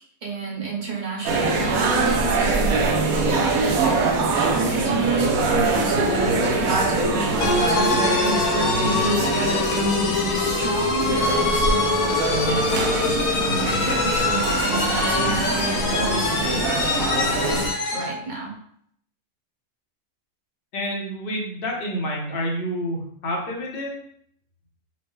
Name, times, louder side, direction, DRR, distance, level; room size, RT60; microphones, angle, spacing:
voice 1, 0.2-5.6 5.8-8.3 8.9-9.4 10.3-12.2 12.7-13.2 13.8-18.5, right 4 dB, 40° right, -3 dB, 0.8 m, -31 dB
sound 1, 1.2-17.7, right 3 dB, 75° right, 1.0 m, -23 dB
sound 2, 7.4-18.1, left 3 dB, 85° left, 1.2 m, -24 dB
voice 2, 20.7-24.0, equal, 45° left, -1 dB, 0.8 m, -28 dB
4.2 x 2.1 x 3.1 m, 0.66 s
omnidirectional pair, 1.5 m